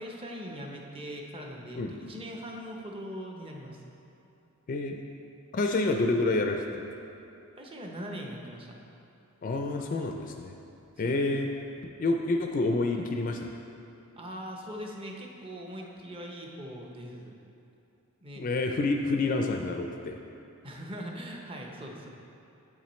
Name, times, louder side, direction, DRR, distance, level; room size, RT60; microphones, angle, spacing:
voice 1, 0.0-3.8 7.6-8.8 11.0-11.3 14.2-17.3 18.2-18.4 20.6-22.1, equal, 25° right, 0 dB, 0.7 m, -41 dB
voice 2, 4.7-5.0 5.5-6.9 9.4-10.6 11.0-11.5 11.8-13.6 18.4-20.2, left 2 dB, 40° left, 3 dB, 0.4 m, -28 dB
8.4 x 7.2 x 3.1 m, 2.8 s
head